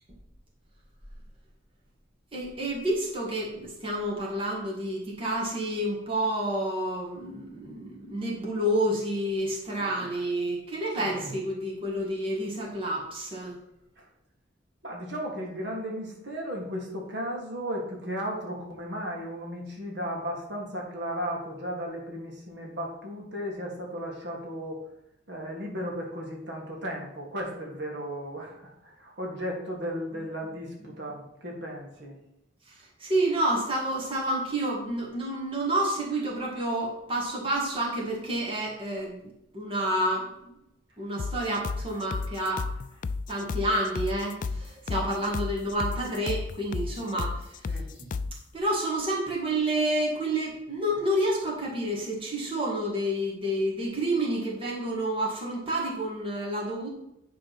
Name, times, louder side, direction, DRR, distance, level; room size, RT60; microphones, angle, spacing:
voice 1, 2.3-13.6 32.7-40.6 41.0-42.7 43.3-48.0 48.5-56.9, right 1 dB, 30° right, -3 dB, 1.9 m, -29 dB
voice 2, 14.8-24.8 25.3-32.2 47.7-47.9, equal, 60° right, -1 dB, 2.0 m, -35 dB
sound 1, 41.2-48.4, left 4 dB, 45° left, 0.3 m, -33 dB
10.0 x 3.8 x 6.0 m, 0.83 s
head